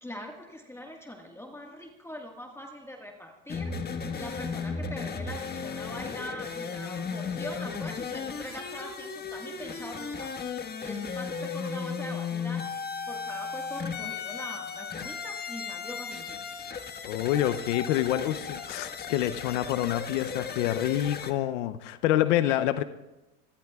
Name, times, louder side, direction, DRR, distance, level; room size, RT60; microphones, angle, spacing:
voice 1, 0.0-3.7 4.0-10.3 10.8-12.7 13.1-16.4 22.4-22.5, equal, 5° left, 1 dB, 1.6 m, -42 dB
sound 1, 3.5-21.3, left 5 dB, 25° left, 1.5 m, -35 dB
voice 2, 17.0-22.8, left 13 dB, 85° left, 13 dB, 0.7 m, -27 dB
26.5 x 16.5 x 2.4 m, 1.0 s
supercardioid pair, 100°, 35 cm